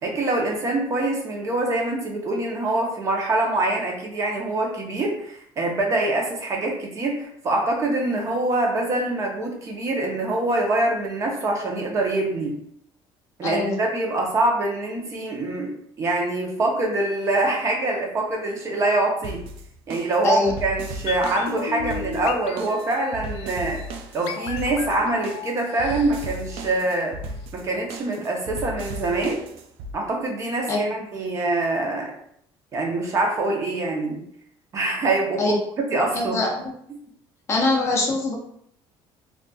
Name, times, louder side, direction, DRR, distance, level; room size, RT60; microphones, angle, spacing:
voice 1, 0.0-12.6 13.4-19.4 19.9-23.8 24.1-27.1 27.5-29.4 29.9-32.1 32.7-34.2 34.7-35.4 35.8-36.4 36.9-37.0, right 2 dB, 30° right, 0 dB, 0.7 m, -24 dB
voice 2, 13.4-13.8 20.2-20.5 30.7-30.8 35.4-35.6 36.1-36.5 37.5-38.3, left 2 dB, 30° left, -1 dB, 0.6 m, -22 dB
sound 1, 19.2-29.9, right 1 dB, 65° right, 0.4 m, -36 dB
sound 2, 21.1-27.1 27.4-27.5, left 7 dB, 80° left, 0.4 m, -36 dB
3.8 x 2.4 x 2.3 m, 0.68 s
cardioid pair, 170°, 10 cm